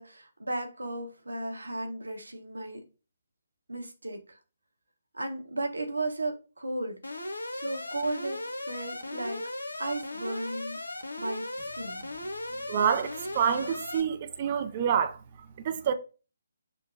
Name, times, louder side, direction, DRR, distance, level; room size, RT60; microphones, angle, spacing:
voice 1, 0.0-2.8 3.7-4.4 5.1-7.0 7.5-9.5 9.8-10.8 11.2-12.1, right 2 dB, 75° right, 0.8 m, -35 dB
Alarm, 7.0-14.0, left 1 dB, 75° left, 0.6 m, -37 dB
voice 2, 12.7-15.2 15.6-15.9, right 8 dB, 35° right, 0.3 m, -27 dB
5.9 x 2.0 x 2.5 m
figure-of-eight pair, 140°, 0 cm